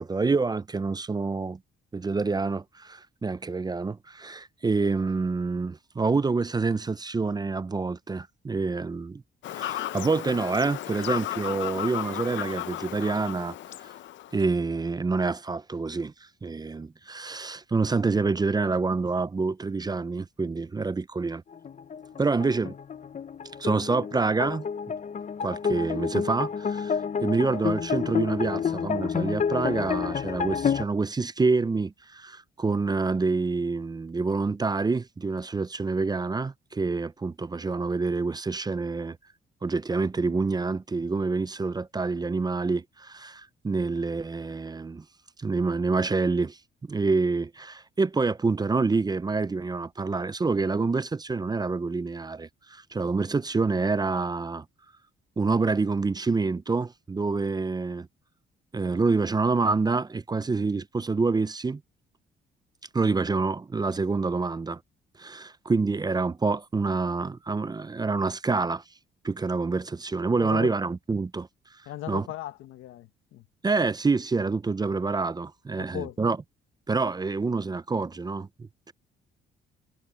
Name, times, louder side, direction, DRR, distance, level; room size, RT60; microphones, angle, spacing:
voice 1, 0.0-1.6 1.9-9.2 9.5-13.6 14.3-16.1 16.4-21.4 22.2-22.7 23.6-24.7 25.4-39.2 39.6-45.0 45.4-46.6 46.9-54.6 55.4-58.1 58.7-61.8 62.9-64.8 65.2-68.8 69.2-71.5 72.1-72.3 73.6-76.4 76.9-78.9, right 4 dB, 20° right, 0.5 m, -27 dB
Fowl / Bird vocalization bird call bird song, 9.4-14.4, left 13 dB, 70° left, 0.6 m, -34 dB
sound 1, 21.5-30.8, left 7 dB, 35° left, 0.7 m, -29 dB
voice 2, 70.3-70.7 71.9-73.5 75.8-76.2, left 13 dB, 85° left, 1.4 m, -37 dB
cardioid pair, 90°, 20 cm